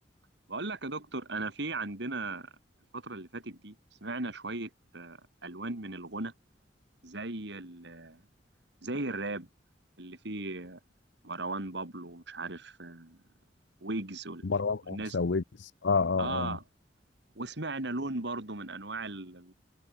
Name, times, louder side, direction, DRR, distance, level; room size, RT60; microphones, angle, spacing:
voice 1, 0.5-2.5 2.9-3.8 4.0-6.3 7.0-8.2 8.8-9.5 10.0-10.8 11.2-13.2 13.8-14.5 14.9-15.2 16.2-16.6 17.3-19.5, right 2 dB, 65° right, 3.1 m, -37 dB
voice 2, 14.4-16.6, left 4 dB, 70° left, 0.7 m, -29 dB
head